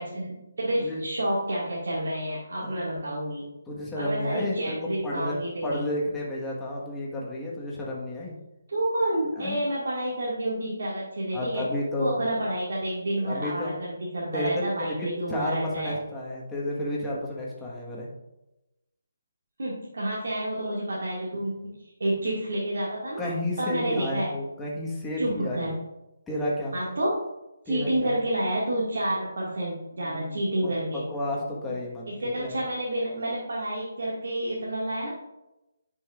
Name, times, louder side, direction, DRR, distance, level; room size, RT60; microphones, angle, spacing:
voice 1, 0.0-3.5 4.0-5.8 8.7-11.6 12.0-16.0 19.6-23.3 23.6-24.3 25.2-25.7 26.7-27.2 27.7-31.0 32.1-35.1, right 1 dB, 70° right, -6 dB, 1.9 m, -29 dB
voice 2, 3.7-5.3 5.6-8.4 9.3-9.6 11.3-12.2 13.2-13.7 14.3-14.5 14.8-18.1 23.2-25.7 26.3-26.8 27.7-28.2 30.0-32.6, left 1 dB, 5° left, -5 dB, 1.3 m, -32 dB
9.7 x 5.5 x 2.4 m, 0.95 s
hypercardioid pair, 165°, 0 cm